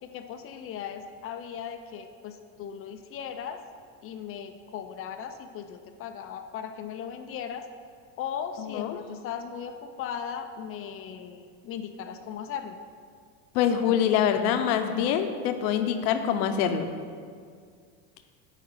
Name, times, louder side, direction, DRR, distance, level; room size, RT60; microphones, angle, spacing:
voice 1, 0.0-3.6 4.0-7.7 8.2-12.8, left 8 dB, 30° left, 7 dB, 0.4 m, -37 dB
voice 2, 8.6-9.0 13.5-16.9, left 8 dB, 75° left, 8 dB, 0.8 m, -25 dB
8.7 x 4.1 x 5.4 m, 2.1 s
supercardioid pair, 130°, 44 cm